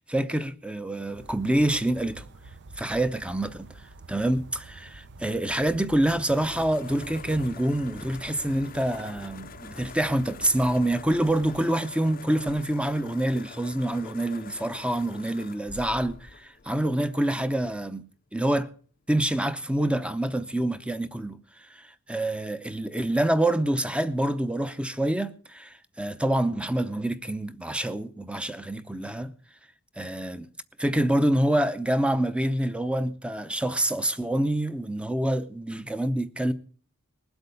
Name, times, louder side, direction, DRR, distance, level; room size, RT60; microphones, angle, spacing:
voice 1, 0.0-2.2 2.8-3.7 4.1-18.0 18.3-18.7 19.1-29.3 30.0-30.5 30.8-36.5, right 1 dB, 5° right, 0.7 m, -26 dB
sound 1, 1.1-11.6, right 2 dB, 55° right, 0.6 m, -47 dB
sound 2, 6.1-17.4, left 5 dB, 40° left, 0.6 m, -46 dB
20.0 x 8.1 x 6.9 m
head